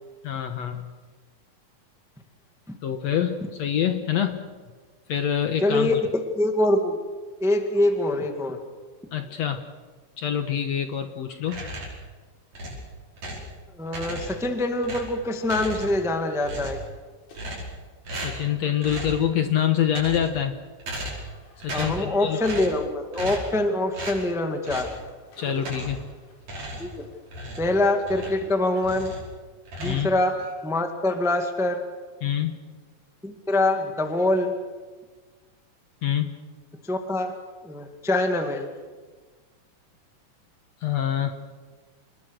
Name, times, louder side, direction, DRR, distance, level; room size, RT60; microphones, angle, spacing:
voice 1, 0.2-0.9 2.8-4.4 5.1-6.0 9.1-9.6 10.2-11.6 18.2-20.5 21.6-22.4 25.4-26.0 29.8-30.1 32.2-32.5 36.0-36.3 40.8-41.4, left 9 dB, 60° left, 7 dB, 2.0 m, -26 dB
voice 2, 5.6-7.0 7.4-8.6 13.8-16.8 21.7-24.9 26.8-27.0 27.6-29.1 29.8-30.4 30.6-31.8 33.2-34.5 36.8-37.3 37.6-38.7, left 2 dB, ahead, 5 dB, 1.1 m, -24 dB
sound 1, 10.1-10.2 10.7-10.8 12.1-12.2 12.5-12.6 13.0-16.5 16.8-17.6 17.8-17.9 18.1-19.1 19.5-19.8 20.1-23.4 23.7-29.4, left 1 dB, 85° left, 6.6 m, -48 dB
sound 2, 11.4-12.1 12.5-13.5 13.9-14.5 14.8-16.1 16.4-16.9 17.3-17.8 18.1-18.5 18.8-19.2 19.8-20.4 20.8-21.3 21.6-22.1 22.4-22.8 23.1-23.6 23.9-24.2 24.6-25.0 25.6-26.1 26.4-28.5 28.8-29.3 29.7-30.5, right 1 dB, 50° right, 6.4 m, -36 dB
27.5 x 21.0 x 6.5 m, 1.4 s
omnidirectional pair, 4.0 m